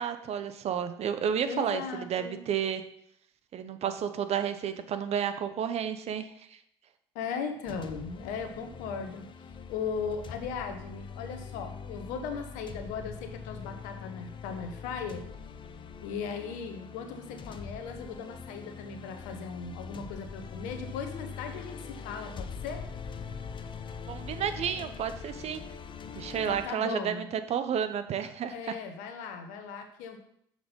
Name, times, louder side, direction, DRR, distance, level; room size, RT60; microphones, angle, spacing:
voice 1, 0.0-2.8 3.5-6.3 24.1-25.6 26.1-28.7, right 8 dB, 50° right, 9 dB, 0.9 m, -31 dB
voice 2, 1.4-2.4 7.1-9.3 9.7-15.2 16.0-22.9 26.5-27.3 28.5-30.2, left 6 dB, 70° left, 6 dB, 1.1 m, -38 dB
sound 1, 7.7-26.7, left 6 dB, 35° left, 0.7 m, -43 dB
6.4 x 6.0 x 5.4 m, 0.70 s
hypercardioid pair, 65°, 14 cm